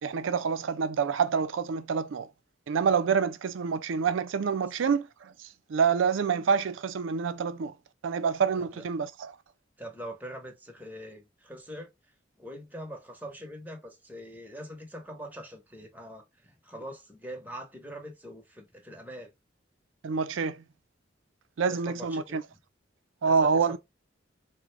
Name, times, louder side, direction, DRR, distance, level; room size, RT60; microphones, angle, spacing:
voice 1, 0.0-2.3 2.7-5.3 5.7-7.7 8.0-9.3 20.0-20.6 21.6-22.4 23.2-23.8, right 6 dB, 85° right, 0.4 m, -27 dB
voice 2, 9.8-11.9 12.4-19.3 21.7-22.4 23.2-23.8, equal, 10° right, 0.8 m, -43 dB
3.6 x 2.2 x 3.2 m
head